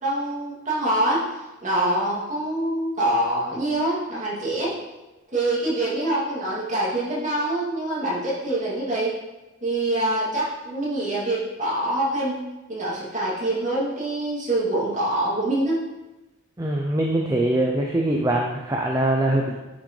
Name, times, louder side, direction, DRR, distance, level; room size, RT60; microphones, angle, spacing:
voice 1, 0.0-1.3 1.6-4.8 5.3-9.2 9.6-12.4 12.7-15.8, right 1 dB, 35° right, -7 dB, 2.6 m, -25 dB
voice 2, 16.6-19.5, right 1 dB, 15° right, 0 dB, 0.5 m, -22 dB
9.9 x 6.1 x 3.3 m, 1.1 s
head